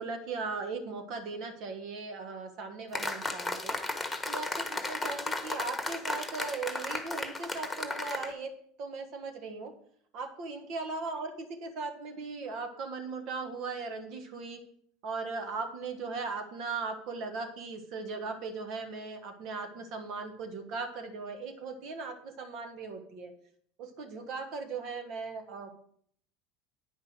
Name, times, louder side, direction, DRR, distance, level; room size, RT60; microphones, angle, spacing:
voice 1, 0.0-3.8 4.2-8.5 8.8-9.7 10.1-14.6 15.0-23.3 23.8-25.7, right 4 dB, 55° right, 6 dB, 1.7 m, -38 dB
sound 1, 2.9-8.3, left 2 dB, 10° left, 1.3 m, -35 dB
9.6 x 5.3 x 6.4 m, 0.63 s
hypercardioid pair, 75°, 0 cm